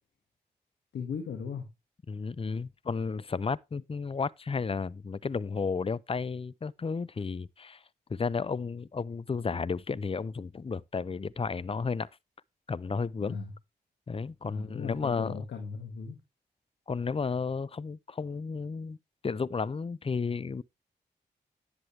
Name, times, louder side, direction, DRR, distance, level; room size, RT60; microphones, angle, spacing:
voice 1, 0.9-1.7 13.2-13.5 14.5-16.2, left 6 dB, 85° left, 1.8 m, -37 dB
voice 2, 2.1-7.8 8.1-12.1 12.7-13.4 14.1-15.5 16.9-19.0 19.2-20.6, left 5 dB, 30° left, 0.6 m, -33 dB
10.5 x 7.9 x 3.3 m
supercardioid pair, 45°, 18 cm